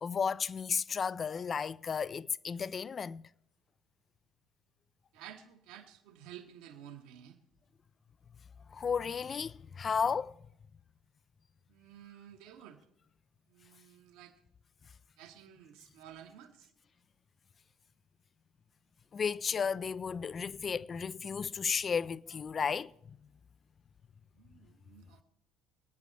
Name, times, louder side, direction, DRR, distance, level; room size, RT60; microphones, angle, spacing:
voice 1, 0.0-3.2 8.7-10.3 19.1-23.2, left 6 dB, 35° left, 0.4 m, -33 dB
voice 2, 5.1-7.4 11.7-12.8 13.5-14.3 15.2-16.7 24.3-25.2, right 10 dB, 70° right, 1.4 m, -52 dB
25.0 x 9.1 x 3.4 m
hypercardioid pair, 65°, 0 cm